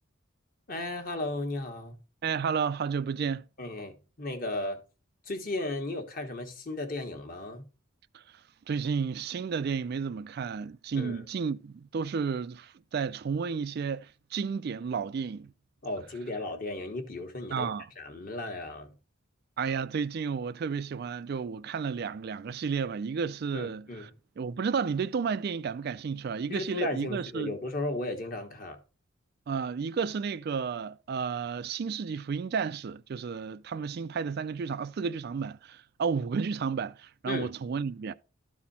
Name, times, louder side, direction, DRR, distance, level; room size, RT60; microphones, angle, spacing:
voice 1, 0.7-2.0 3.6-4.8 5.2-7.7 10.9-11.2 15.8-17.7 18.0-18.9 23.5-24.1 26.5-28.8 37.3-37.5, left 2 dB, 40° left, 1.3 m, -35 dB
voice 2, 2.2-3.4 8.1-8.2 8.7-15.5 17.5-17.9 19.6-24.1 24.4-27.5 29.5-38.1, right 6 dB, 50° right, 0.3 m, -32 dB
12.5 x 4.2 x 4.1 m
head